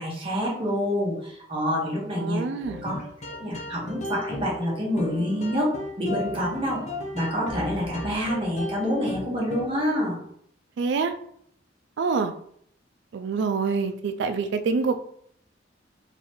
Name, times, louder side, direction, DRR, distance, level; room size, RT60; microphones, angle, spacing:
voice 1, 0.0-2.4 2.8-2.9 3.3-5.7 6.0-6.8 7.1-10.2, equal, 30° right, -5 dB, 1.4 m, -27 dB
voice 2, 2.2-2.8 10.8-11.1 12.0-12.3 13.1-15.0, right 4 dB, 65° right, 9 dB, 0.3 m, -26 dB
sound 1, 2.6-9.9, left 2 dB, 40° left, 0.8 m, -35 dB
4.0 x 3.0 x 3.0 m, 0.67 s
head